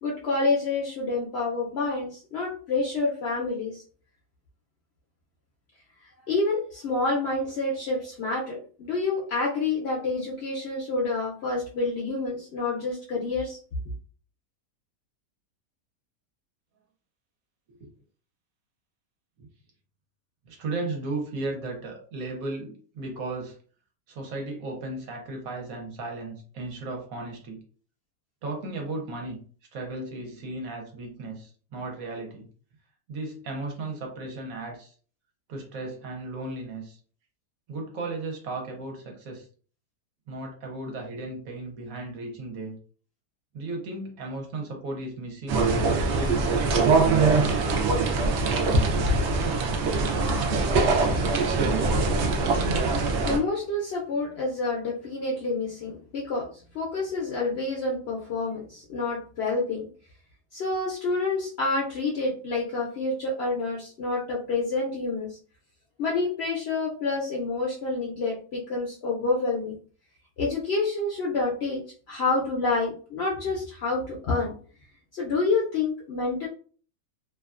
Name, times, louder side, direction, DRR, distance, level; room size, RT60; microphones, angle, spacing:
voice 1, 0.0-3.8 6.3-13.6 53.2-59.9 60.5-65.4 66.0-69.8 70.4-71.8 72.1-74.5 75.1-76.5, left 3 dB, 75° left, -3 dB, 0.6 m, -28 dB
voice 2, 20.4-23.6 24.1-27.6 28.4-29.4 29.7-32.5 33.1-34.9 35.5-37.0 37.7-39.5 40.3-42.7 43.5-46.9, right 2 dB, 65° right, 1 dB, 1.0 m, -35 dB
sound 1, 45.5-53.4, right 3 dB, 85° right, 0.6 m, -23 dB
2.7 x 2.2 x 2.4 m, 0.42 s
omnidirectional pair, 1.8 m